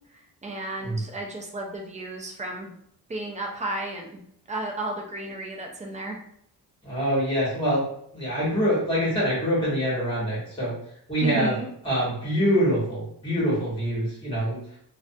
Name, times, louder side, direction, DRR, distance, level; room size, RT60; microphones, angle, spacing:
voice 1, 0.4-2.7 3.1-4.2 4.5-6.2 11.2-11.7, right 2 dB, 20° right, 1 dB, 0.4 m, -33 dB
voice 2, 6.8-7.9 8.1-10.7 11.1-11.6 11.8-14.6, equal, 15° left, -7 dB, 1.1 m, -25 dB
2.4 x 2.1 x 2.5 m, 0.68 s
wide cardioid pair, 140°, 39 cm